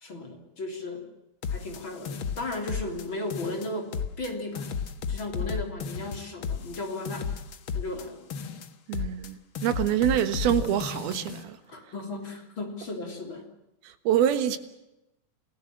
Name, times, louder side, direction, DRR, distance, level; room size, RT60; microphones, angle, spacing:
voice 1, 0.0-1.1 1.5-4.7 5.1-7.3 7.7-8.3 11.7-13.5, left 2 dB, 35° left, 3.9 m, -35 dB
sound 1, 1.4-3.0 3.3-4.3 4.5-8.0 8.3-9.3 9.5-11.4, left 6 dB, 65° left, 1.2 m, -34 dB
voice 2, 8.9-11.6 13.9-14.6, right 10 dB, 85° right, 3.4 m, -26 dB
28.0 x 16.5 x 7.5 m
omnidirectional pair, 4.3 m